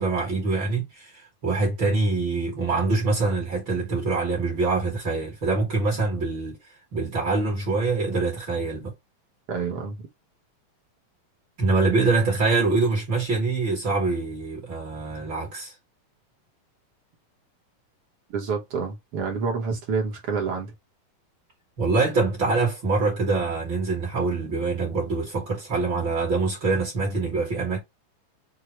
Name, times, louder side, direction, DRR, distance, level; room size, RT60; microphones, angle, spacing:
voice 1, 0.0-6.6 6.9-8.9 11.6-15.7 21.8-27.8, right 3 dB, 50° right, 1.6 m, -24 dB
voice 2, 9.5-10.0 18.3-20.7, right 5 dB, 65° right, 1.4 m, -28 dB
6.2 x 2.1 x 3.0 m
omnidirectional pair, 3.8 m